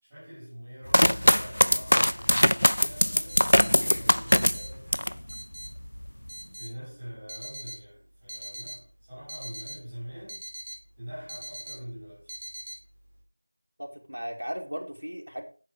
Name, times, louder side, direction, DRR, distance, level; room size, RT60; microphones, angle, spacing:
voice 1, 0.0-5.2 6.4-10.4 11.0-12.3, equal, 5° right, 3.9 m, -44 dB
sound 1, 0.9-5.2 5.6-6.3, equal, 60° left, 0.4 m, -21 dB
sound 2, 3.2-13.2, right 1 dB, 25° right, 1.4 m, -44 dB
voice 2, 13.8-15.4, equal, 85° right, 2.6 m, -36 dB
9.9 x 8.3 x 3.6 m
figure-of-eight pair, 180°, 0 cm